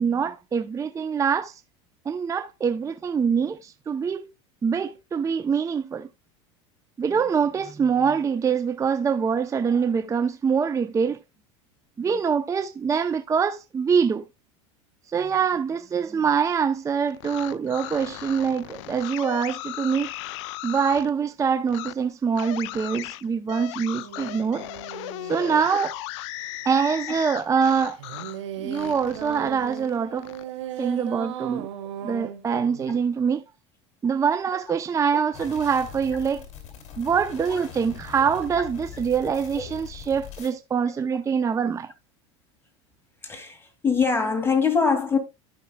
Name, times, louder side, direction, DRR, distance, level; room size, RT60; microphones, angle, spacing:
voice 1, 0.0-1.6 2.1-4.3 4.6-6.1 7.0-11.2 12.0-14.2 15.1-20.1 20.6-24.7 25.2-25.9 26.6-28.0 28.6-30.3 30.8-31.7 32.0-33.4 34.0-36.4 37.0-41.9, right 6 dB, 20° right, 0.6 m, -24 dB
sound 1, 17.1-21.1 21.7-21.9 22.3-28.4 28.7-30.4, left 18 dB, 75° left, 0.4 m, -36 dB
sound 2, 23.9-25.7 28.0-33.0, right 11 dB, 85° right, 1.3 m, -37 dB
sound 3, 35.3-40.5, left 8 dB, 45° left, 2.8 m, -42 dB
voice 2, 43.2-45.2, left 5 dB, 15° left, 2.3 m, -23 dB
14.0 x 5.8 x 2.2 m
supercardioid pair, 100°, 15 cm